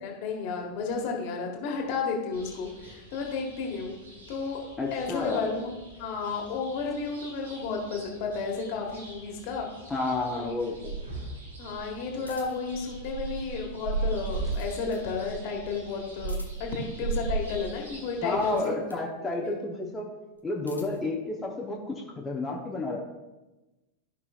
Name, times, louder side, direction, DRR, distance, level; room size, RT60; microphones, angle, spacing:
voice 1, 0.0-3.9 4.3-4.6 4.9-9.7 10.3-10.5 11.6-18.8 19.2-19.5, left 4 dB, 45° left, 1 dB, 1.7 m, -32 dB
sound 1, 2.3-18.6, right 3 dB, 70° right, 1.6 m, -38 dB
voice 2, 4.8-5.4 9.9-11.0 18.2-20.1 20.4-23.0, left 2 dB, 15° left, -2 dB, 0.9 m, -31 dB
sound 2, 6.8-15.9, left 2 dB, 10° right, 1.3 m, -47 dB
sound 3, 12.2-12.8 14.1-15.1 16.2-16.8 18.3-19.1 20.3-21.1, left 2 dB, 85° left, 0.9 m, -50 dB
13.5 x 5.5 x 2.4 m, 1.1 s
figure-of-eight pair, 90°, 0 cm